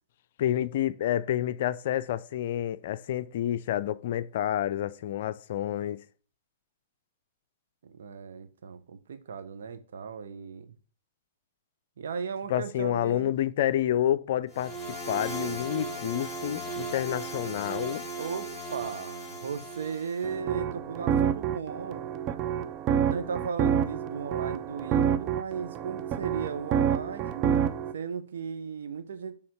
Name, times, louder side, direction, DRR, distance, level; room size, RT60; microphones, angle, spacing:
voice 1, 0.4-6.0 12.5-14.7 15.1-18.0, left 11 dB, 60° left, 0.4 m, -29 dB
voice 2, 7.8-10.8 12.0-13.3 18.2-22.0 23.1-27.4 27.9-29.3, right 6 dB, 70° right, 0.9 m, -36 dB
sound 1, 14.5-20.3, right 2 dB, 5° right, 2.7 m, -37 dB
sound 2, 20.2-27.9, right 8 dB, 35° right, 0.5 m, -28 dB
6.9 x 3.6 x 6.3 m
hypercardioid pair, 110°, 0 cm